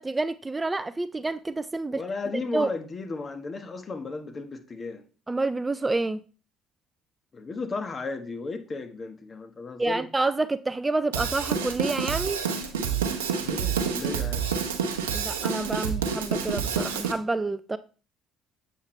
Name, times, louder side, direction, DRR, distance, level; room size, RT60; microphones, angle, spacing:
voice 1, 0.0-2.0 2.5-2.7 5.3-6.2 9.8-12.4 15.1-17.8, right 3 dB, 20° right, 0.4 m, -28 dB
voice 2, 1.9-5.0 7.3-10.1 13.4-14.5, left 3 dB, 35° left, 1.3 m, -34 dB
Drum kit / Drum, 11.1-17.1, right 6 dB, 85° right, 0.8 m, -28 dB
8.0 x 6.4 x 3.3 m
hypercardioid pair, 55°, 0 cm